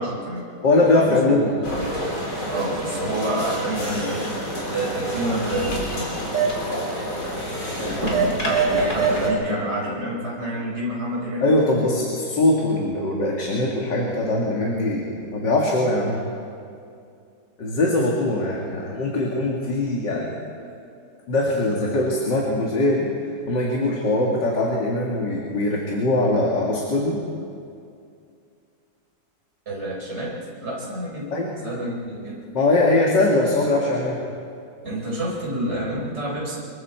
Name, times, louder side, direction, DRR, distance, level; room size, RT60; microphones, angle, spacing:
voice 1, 0.0-0.4 0.8-1.8 2.5-4.2 4.7-6.1 8.0-11.4 29.7-31.4 31.6-32.4 34.8-36.6, right 1 dB, 40° right, -4 dB, 4.4 m, -28 dB
voice 2, 0.6-1.5 7.8-8.1 11.4-16.2 17.6-20.4 21.3-23.1 23.5-27.2 31.3-31.5 32.5-34.2, left 2 dB, 80° left, -2 dB, 2.8 m, -21 dB
sound 1, 1.6-9.3, right 2 dB, 60° left, 4.2 m, -26 dB
25.0 x 22.5 x 4.6 m, 2.4 s
omnidirectional pair, 1.9 m